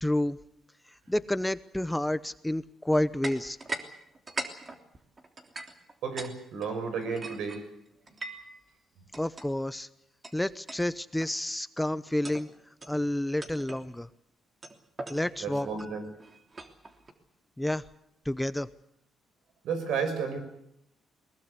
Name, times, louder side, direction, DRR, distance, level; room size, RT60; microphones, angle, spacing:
voice 1, 0.0-0.4 1.1-3.6 9.1-9.9 10.3-12.5 12.9-14.1 15.1-15.7 17.6-17.8 18.2-18.7, left 1 dB, 5° left, 14 dB, 0.8 m, -29 dB
sound 1, 3.2-3.9 4.1-6.3 6.6-8.5 9.1-9.5 10.2-10.3 10.7-10.9 11.2-11.5 12.1-12.5 12.8-13.0 13.4-13.8 14.6-17.1, right 2 dB, 30° right, 3.2 m, -40 dB
voice 2, 6.0-7.6 15.4-16.1 19.6-20.4, right 5 dB, 80° right, 8 dB, 6.2 m, -32 dB
21.5 x 21.0 x 8.2 m, 0.78 s
cardioid pair, 90°, 0 cm